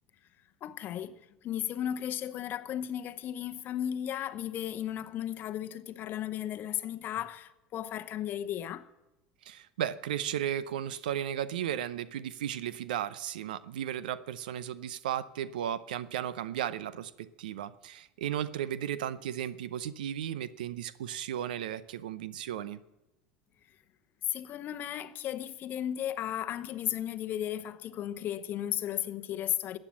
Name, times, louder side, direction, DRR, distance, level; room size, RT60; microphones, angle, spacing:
voice 1, 0.6-8.9 24.3-29.8, left 11 dB, 45° left, 0.8 m, -35 dB
voice 2, 9.4-22.8, right 10 dB, 90° right, 0.6 m, -35 dB
14.5 x 8.9 x 7.3 m
supercardioid pair, 100°, 5 cm